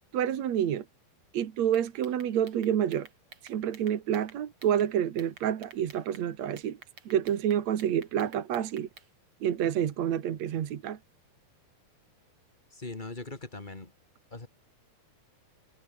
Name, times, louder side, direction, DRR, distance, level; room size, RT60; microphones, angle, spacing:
voice 1, 0.1-0.8 1.3-3.1 3.4-6.8 7.1-8.9 9.4-11.0, right 10 dB, 55° right, 2.2 m, -28 dB
sound 1, 1.7-4.9 5.2-6.3 6.6-9.1, right 5 dB, 35° right, 3.8 m, -52 dB
voice 2, 12.7-13.9 14.3-14.5, left 2 dB, 25° left, 1.1 m, -40 dB
omnidirectional pair, 4.8 m